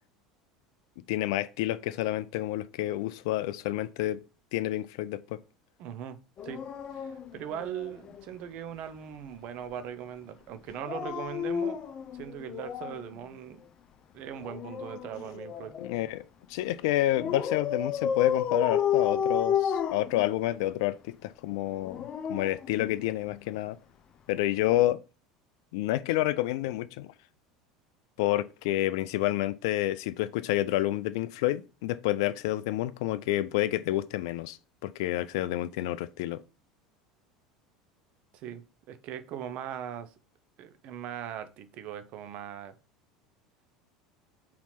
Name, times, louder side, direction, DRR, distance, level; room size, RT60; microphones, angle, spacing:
voice 1, 1.1-4.2 4.5-5.4 15.8-23.8 24.3-25.0 25.7-27.1 28.2-36.4, left 15 dB, 55° left, 0.3 m, -29 dB
voice 2, 5.8-6.2 6.4-6.6 6.9-11.8 12.1-13.6 14.1-15.7 38.3-38.6 38.9-40.1 40.6-42.7, right 9 dB, 45° right, 0.8 m, -39 dB
Dog, 6.4-8.2 10.7-13.1 14.4-16.0 17.2-20.7 21.7-23.4 24.6-24.8, left 8 dB, 35° left, 0.7 m, -32 dB
4.3 x 4.2 x 5.7 m
figure-of-eight pair, 70°, 3 cm